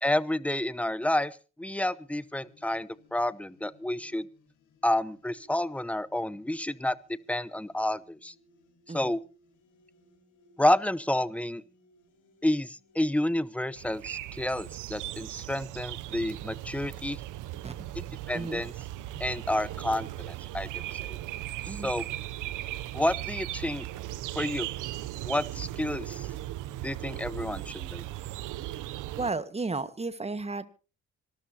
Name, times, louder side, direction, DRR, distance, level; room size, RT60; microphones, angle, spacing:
voice 1, 0.0-4.3 4.8-7.0 7.3-8.3 8.9-9.2 10.6-11.6 12.4-17.2 17.9-18.7 19.2-20.7 21.0-21.2 21.6-22.0 22.9-23.9 24.3-24.7 25.3-26.3 26.8-28.0, left 1 dB, 5° left, 16 dB, 0.8 m, -30 dB
sound 1, 2.0-15.8, left 2 dB, 85° left, 6.5 m, -63 dB
sound 2, 13.8-29.3, right 15 dB, 85° right, 0.7 m, -37 dB
voice 2, 29.2-30.7, right 3 dB, 20° right, 13 dB, 1.6 m, -34 dB
25.5 x 13.0 x 2.9 m, 0.34 s
cardioid pair, 90°, 30 cm